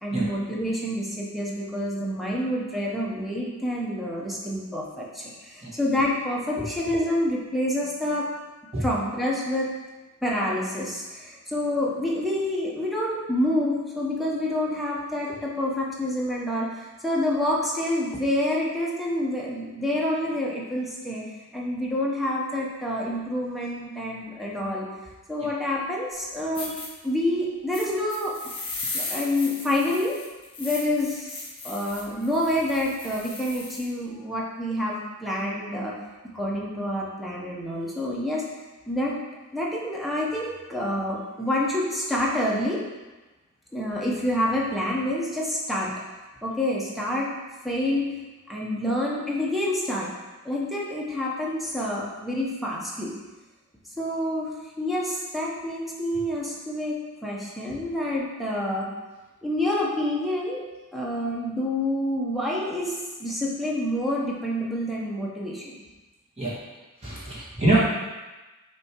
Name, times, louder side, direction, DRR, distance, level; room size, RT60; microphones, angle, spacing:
voice 1, 0.0-8.3 8.8-9.7 10.2-21.2 21.5-24.9 25.3-26.8 27.0-28.3 28.9-30.2 30.6-35.9 36.3-38.4 38.9-39.1 39.5-42.8 43.7-45.9 46.4-47.3 47.6-48.1 48.5-50.1 50.4-53.1 54.0-54.5 54.8-58.9 59.4-60.6 60.9-62.9 63.2-65.8, left 1 dB, ahead, -5 dB, 1.0 m, -27 dB
sound 1, 26.1-26.2 26.5-26.9 27.7-33.9, left 3 dB, 25° left, 1.3 m, -36 dB
voice 2, 67.0-67.8, right 2 dB, 30° right, -8 dB, 1.9 m, -24 dB
6.7 x 3.5 x 4.6 m, 1.2 s
head